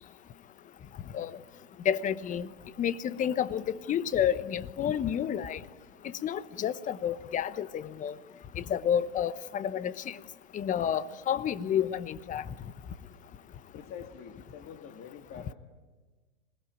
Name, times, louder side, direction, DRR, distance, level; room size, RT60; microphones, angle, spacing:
voice 1, 1.8-2.5 2.8-5.6 6.2-8.2 8.6-10.2 10.5-12.4, left 9 dB, 20° left, 15 dB, 1.0 m, -30 dB
voice 2, 13.7-15.5, left 7 dB, 35° left, 4 dB, 2.4 m, -45 dB
26.5 x 21.0 x 9.1 m, 1.3 s
hypercardioid pair, 115°, 35 cm